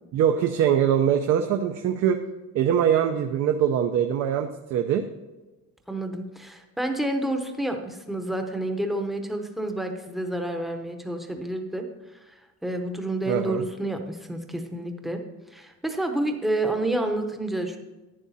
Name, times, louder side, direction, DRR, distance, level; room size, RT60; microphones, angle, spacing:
voice 1, 0.1-2.2 2.5-5.0 13.3-13.6, right 9 dB, 60° right, 6 dB, 0.7 m, -23 dB
voice 2, 5.9-11.9 12.2-15.2 15.5-17.8, right 1 dB, ahead, 4 dB, 0.8 m, -29 dB
11.0 x 9.5 x 4.1 m, 1.1 s
cardioid pair, 175°, 29 cm